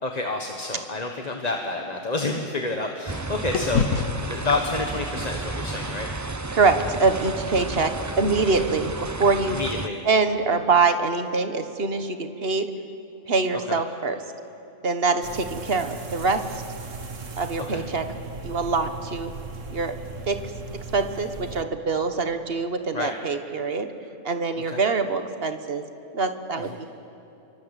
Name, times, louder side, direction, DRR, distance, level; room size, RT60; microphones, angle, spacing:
voice 1, 0.0-3.8 4.3-6.1 9.5-10.0 13.7-13.8 17.7-17.8 22.9-23.1 24.7-24.8, left 3 dB, 30° left, 3 dB, 1.5 m, -29 dB
sound 1, 0.8-3.2 3.5-7.8, left 6 dB, 65° left, 1.4 m, -32 dB
sound 2, 3.1-9.9, right 3 dB, 20° right, 0.4 m, -32 dB
voice 2, 6.5-9.6 10.0-12.7 13.3-14.2 14.8-16.6 17.4-18.1 18.4-19.3 19.7-19.9 20.3-20.4 20.9-23.9 24.2-25.8 26.1-26.9, right 4 dB, 45° right, 8 dB, 1.6 m, -24 dB
sound 3, 15.2-21.6, right 4 dB, 60° right, 1.9 m, -38 dB
28.5 x 24.0 x 8.3 m, 2.9 s
omnidirectional pair, 1.5 m